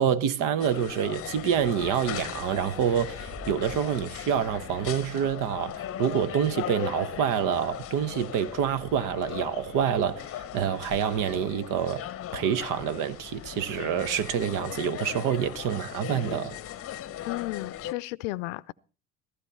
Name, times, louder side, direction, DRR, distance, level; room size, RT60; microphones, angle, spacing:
voice 1, 0.0-12.0 12.3-16.6, right 8 dB, 55° right, 1.1 m, -27 dB
sound 1, 0.6-17.9, left 11 dB, 35° left, 0.8 m, -38 dB
sound 2, 1.1-6.3, equal, 80° right, 6.9 m, -48 dB
voice 2, 17.3-18.7, left 19 dB, 70° left, 0.6 m, -33 dB
15.5 x 13.5 x 4.3 m
hypercardioid pair, 65°, 38 cm